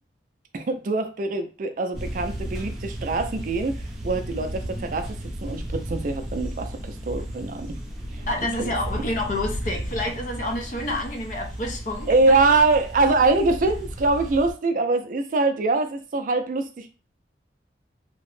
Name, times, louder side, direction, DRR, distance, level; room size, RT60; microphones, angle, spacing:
voice 1, 0.5-7.8 8.1-8.2 8.6-8.7 12.1-16.9, right 3 dB, 45° right, 7 dB, 0.4 m, -23 dB
sound 1, 1.9-14.5, right 1 dB, ahead, 0.6 m, -34 dB
voice 2, 8.3-12.4, left 1 dB, 45° left, 3 dB, 0.5 m, -29 dB
2.8 x 2.1 x 3.1 m, 0.33 s
head